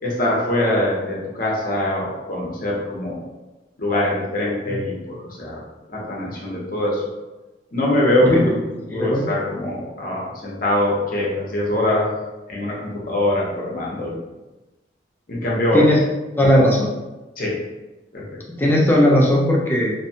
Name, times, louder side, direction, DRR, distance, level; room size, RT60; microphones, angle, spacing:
voice 1, 0.0-3.2 3.8-5.6 5.9-7.0 7.7-8.6 8.9-12.1 12.5-14.2 15.3-15.8 17.4-17.5 18.1-18.4, left 1 dB, 50° left, -4 dB, 0.7 m, -23 dB
voice 2, 8.9-9.3 15.7-16.0 16.4-16.9 18.5-19.9, equal, 10° left, -3 dB, 0.4 m, -17 dB
2.6 x 2.2 x 2.7 m, 1.1 s
head